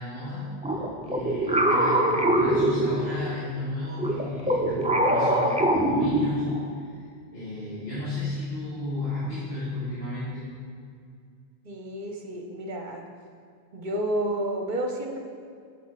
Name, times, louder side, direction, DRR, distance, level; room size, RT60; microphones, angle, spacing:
voice 1, 0.0-6.5 6.8-7.0 7.3-10.5, left 2 dB, 70° left, -11 dB, 2.1 m, -34 dB
sound 1, 0.6-3.4 4.0-6.7, right 1 dB, 10° right, 0.4 m, -23 dB
voice 2, 11.6-13.1 13.7-15.2, right 1 dB, 50° right, 2 dB, 1.1 m, -30 dB
9.2 x 7.0 x 4.0 m, 2.3 s
omnidirectional pair, 1.1 m